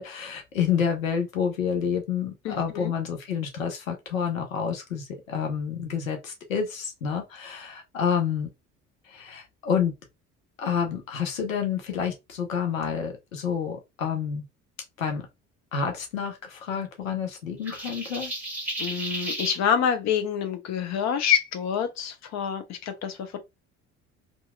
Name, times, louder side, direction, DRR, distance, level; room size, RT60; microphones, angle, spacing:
voice 1, 0.0-8.5 9.0-9.9 10.6-14.4 15.0-15.2 15.7-18.3, left 7 dB, 85° left, 0.6 m, -29 dB
voice 2, 2.4-2.9 18.8-23.4, left 8 dB, 45° left, 0.7 m, -27 dB
sound 1, 17.7-19.6, right 1 dB, 5° right, 1.3 m, -33 dB
2.7 x 2.5 x 2.3 m
figure-of-eight pair, 55°, 39 cm